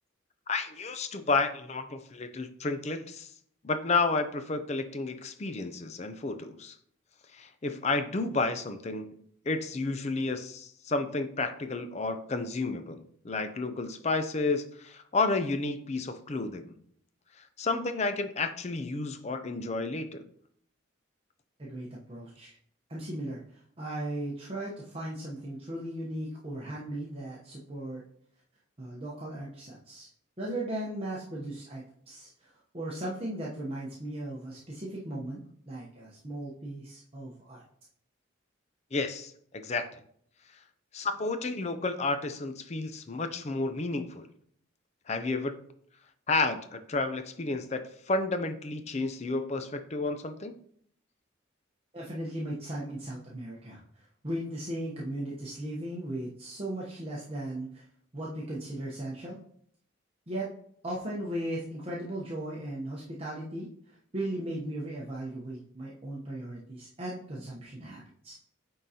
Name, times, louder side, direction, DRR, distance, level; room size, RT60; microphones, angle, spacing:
voice 1, 0.5-3.3 3.6-6.7 7.3-16.8 17.6-20.3 38.9-39.9 40.9-44.3 45.1-45.6 46.3-47.8 48.1-50.6, left 3 dB, 35° left, 9 dB, 0.5 m, -31 dB
voice 2, 21.6-22.6 22.9-28.0 28.8-30.1 30.4-37.6 51.9-57.9 58.1-59.4 60.3-60.5 60.8-68.3, right 1 dB, 30° right, -5 dB, 0.8 m, -37 dB
9.0 x 3.8 x 2.8 m, 0.65 s
head